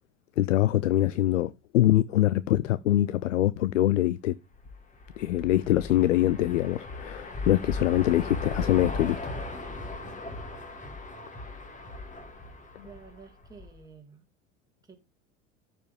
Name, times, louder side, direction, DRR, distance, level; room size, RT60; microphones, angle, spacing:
voice 1, 0.4-4.4 5.2-9.4 12.8-12.9, left 14 dB, 75° left, 0.5 m, -24 dB
sound 1, 4.5-13.8, left 2 dB, 20° left, 2.3 m, -38 dB
voice 2, 12.8-14.3 14.8-15.0, right 5 dB, 10° right, 2.1 m, -50 dB
14.0 x 5.0 x 3.6 m
figure-of-eight pair, 80°, 38 cm